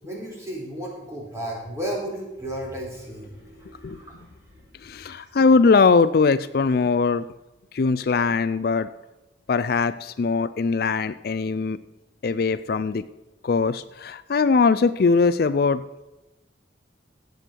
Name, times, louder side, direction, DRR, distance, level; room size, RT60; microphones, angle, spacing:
voice 1, 0.0-4.6 5.1-5.2, right 1 dB, 15° right, -3 dB, 4.0 m, -34 dB
voice 2, 4.8-7.3 7.7-8.9 9.5-11.8 12.2-13.0 13.4-15.8, left 4 dB, 55° left, 14 dB, 0.4 m, -21 dB
17.0 x 8.0 x 4.5 m, 1.0 s
head